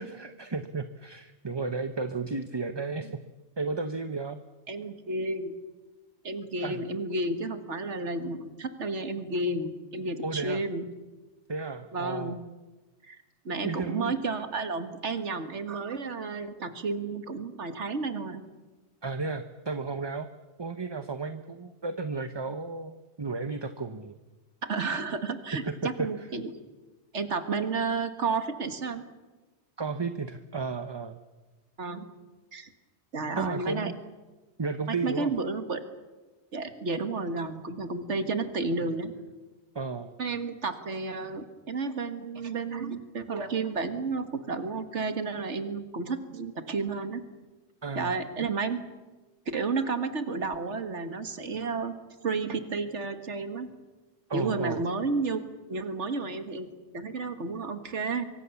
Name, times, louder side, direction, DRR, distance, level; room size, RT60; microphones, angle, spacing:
voice 1, 0.0-3.2 3.6-4.4 6.6-6.8 10.2-10.6 11.5-12.4 13.6-14.1 19.0-20.3 20.6-24.1 25.6-26.3 29.8-31.2 33.4-34.0 34.6-35.3 39.7-40.1 47.8-48.1 54.3-54.8, right 4 dB, 25° right, 9 dB, 0.8 m, -33 dB
voice 2, 4.7-5.5 6.2-10.8 11.9-12.4 13.1-18.4 24.6-26.5 27.1-29.0 31.8-32.1 32.5-32.7 33.1-33.9 34.9-35.8 36.5-39.1 40.2-47.2 48.0-48.8 49.5-51.9 52.2-53.7 54.3-55.4 55.7-56.7 56.9-58.3, right 3 dB, 80° right, 9 dB, 2.0 m, -32 dB
24.5 x 24.0 x 7.1 m, 1.2 s
omnidirectional pair, 1.2 m